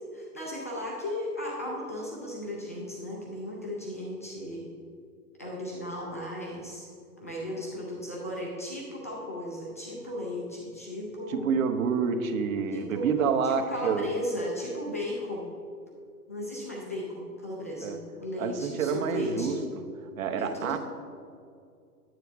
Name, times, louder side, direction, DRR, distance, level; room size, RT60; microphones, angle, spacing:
voice 1, 0.0-4.7 5.4-6.9 7.2-11.5 12.7-13.1 13.4-15.6 16.3-19.6 20.4-20.8, left 1 dB, 10° left, -4 dB, 0.3 m, -36 dB
voice 2, 11.3-14.1 17.8-18.0 18.4-19.8 20.2-20.8, right 6 dB, 55° right, 7 dB, 1.0 m, -28 dB
10.0 x 9.2 x 3.5 m, 2.4 s
hypercardioid pair, 125°, 48 cm